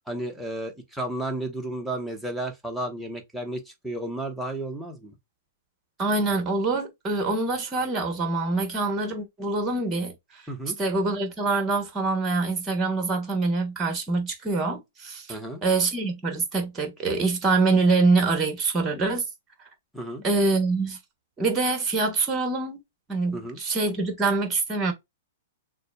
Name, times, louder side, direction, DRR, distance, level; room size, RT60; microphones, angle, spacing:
voice 1, 0.1-5.1 10.5-10.8 15.3-15.6 19.9-20.2 23.3-23.6, right 1 dB, ahead, 1.0 m, -33 dB
voice 2, 6.0-10.1 10.8-19.2 20.2-21.0 21.4-22.8 23.1-24.9, right 3 dB, 20° right, 1.4 m, -25 dB
6.5 x 2.2 x 2.3 m
figure-of-eight pair, 110°, 0 cm